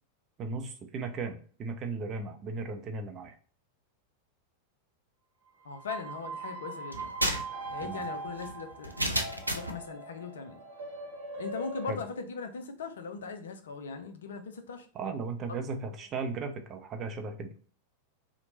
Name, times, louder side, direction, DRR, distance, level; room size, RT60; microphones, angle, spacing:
voice 1, 0.4-3.3 7.8-8.0 11.9-12.0 14.9-17.5, right 4 dB, 30° right, 6 dB, 0.5 m, -36 dB
voice 2, 5.6-7.1 7.7-9.1 9.5-10.6 11.4-14.9, left 5 dB, 65° left, 7 dB, 0.5 m, -39 dB
sound 1, 5.7-11.9, right 2 dB, 60° right, 0.9 m, -41 dB
sound 2, 6.9-9.8, right 1 dB, 85° right, 0.4 m, -32 dB
2.9 x 2.1 x 3.8 m, 0.43 s
figure-of-eight pair, 90°, 0 cm